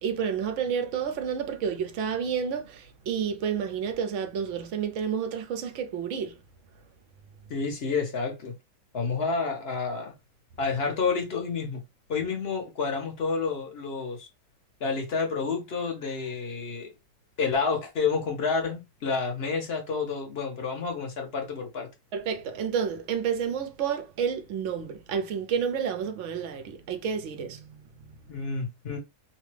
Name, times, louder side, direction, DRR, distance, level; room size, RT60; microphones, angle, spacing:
voice 1, 0.0-6.3 22.1-28.2, right 7 dB, 70° right, 0.7 m, -30 dB
voice 2, 7.5-8.5 8.9-10.1 10.6-11.8 12.1-14.3 14.8-16.9 17.4-21.9 28.3-29.0, left 4 dB, 55° left, 0.7 m, -29 dB
2.9 x 2.2 x 3.2 m
omnidirectional pair, 1.9 m